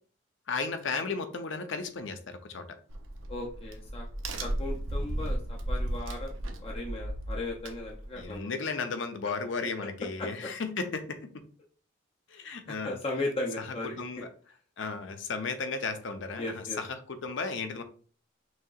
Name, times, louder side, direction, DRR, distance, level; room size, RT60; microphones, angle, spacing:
voice 1, 0.5-2.7 8.2-11.3 12.3-12.9 13.8-14.3 14.8-17.8, left 4 dB, 70° left, 7 dB, 0.6 m, -34 dB
Crack, 2.9-8.3, right 1 dB, 85° right, 0.7 m, -35 dB
voice 2, 3.3-4.1 4.4-6.3 6.6-8.5 10.2-10.3 12.8-14.2 16.4-16.8, left 2 dB, 30° left, -1 dB, 0.5 m, -36 dB
6.1 x 2.8 x 2.4 m, 0.42 s
head